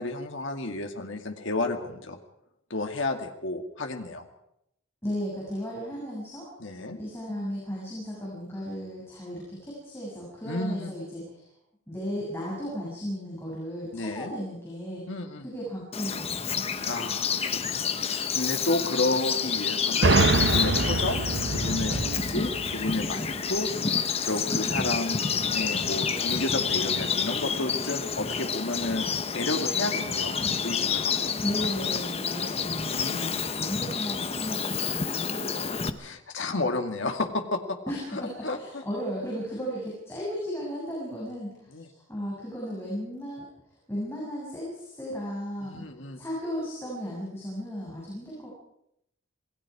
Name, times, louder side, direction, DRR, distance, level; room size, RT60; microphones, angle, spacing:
voice 1, 0.0-2.2 2.7-4.3 6.6-7.0 10.5-10.9 13.9-14.3 15.1-15.5 16.9-21.2 21.5-30.4 30.6-31.3 32.9-33.5 36.0-37.8 38.1-38.8 41.7-41.9 45.6-46.2, left 2 dB, 65° left, 4 dB, 2.2 m, -32 dB
voice 2, 5.0-6.5 7.0-11.4 11.9-15.1 15.4-16.8 31.4-36.0 37.9-38.0 38.4-41.7 42.1-43.5 43.9-45.9 46.2-48.5, equal, 10° left, -6 dB, 7.1 m, -35 dB
Bird vocalization bird call bird song, 15.9-35.9, left 6 dB, 30° left, 1.0 m, -29 dB
sound 1, 20.0-23.7, right 3 dB, 55° right, 1.1 m, -25 dB
27.0 x 20.0 x 4.9 m, 0.77 s
head